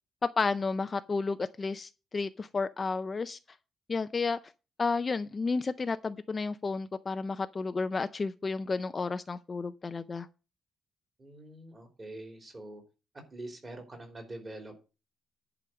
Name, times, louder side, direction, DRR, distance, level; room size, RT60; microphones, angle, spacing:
voice 1, 0.4-3.4 3.9-4.4 4.8-10.3, left 4 dB, 25° left, 0.5 m, -32 dB
voice 2, 11.2-12.8 13.3-14.7, right 1 dB, 20° right, 3.4 m, -44 dB
10.5 x 5.0 x 7.8 m
cardioid pair, 155°, 0 cm